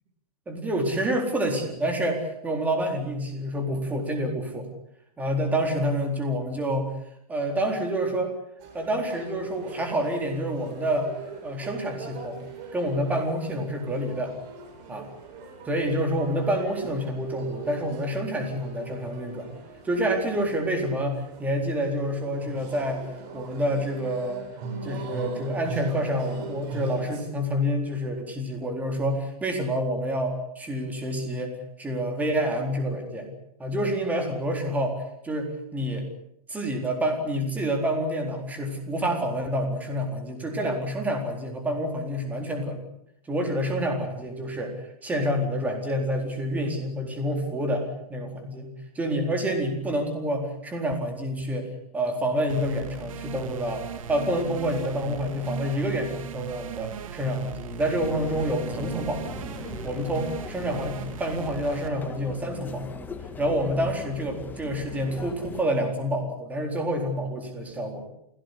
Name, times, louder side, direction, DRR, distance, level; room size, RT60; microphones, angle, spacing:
voice 1, 0.5-4.7 5.2-6.9 7.3-8.3 8.7-11.1 11.4-12.4 12.7-14.3 14.9-15.1 15.6-19.5 19.8-23.1 23.3-24.5 24.8-33.3 33.6-36.1 36.5-42.8 43.3-59.4 59.8-68.1, equal, 10° right, 3 dB, 4.1 m, -28 dB
sound 1, 8.6-27.2, right 4 dB, 30° right, 8.0 m, -40 dB
sound 2, 52.5-61.9, right 9 dB, 55° right, 2.4 m, -38 dB
sound 3, 58.0-65.6, left 5 dB, 10° left, 1.6 m, -40 dB
29.5 x 16.5 x 8.4 m, 0.74 s
hypercardioid pair, 165°, 20 cm